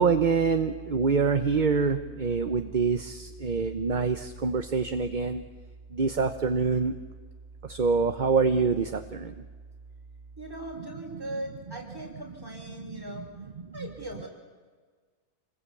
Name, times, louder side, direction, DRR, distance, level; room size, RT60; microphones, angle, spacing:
voice 1, 0.0-5.4 5.9-6.9 7.6-9.3, right 5 dB, 40° right, 8 dB, 1.0 m, -25 dB
voice 2, 10.4-13.3 13.7-14.3, right 1 dB, 15° right, -1 dB, 5.5 m, -39 dB
27.0 x 20.5 x 8.5 m, 1.5 s
omnidirectional pair, 1.5 m